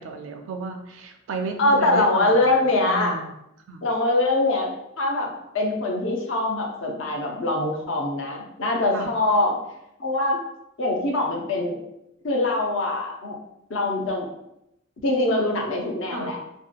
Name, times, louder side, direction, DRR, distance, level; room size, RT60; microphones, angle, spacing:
voice 1, 0.0-2.5 2.9-3.3 3.7-3.9 8.9-9.1 16.1-16.3, right 4 dB, 65° right, 5 dB, 0.3 m, -33 dB
voice 2, 1.6-3.2 3.8-4.7 5.0-9.6 10.0-10.4 10.8-11.8 12.2-13.4 13.7-14.3 15.0-16.4, left 2 dB, 60° left, 1 dB, 0.5 m, -23 dB
2.7 x 2.2 x 2.4 m, 0.83 s
head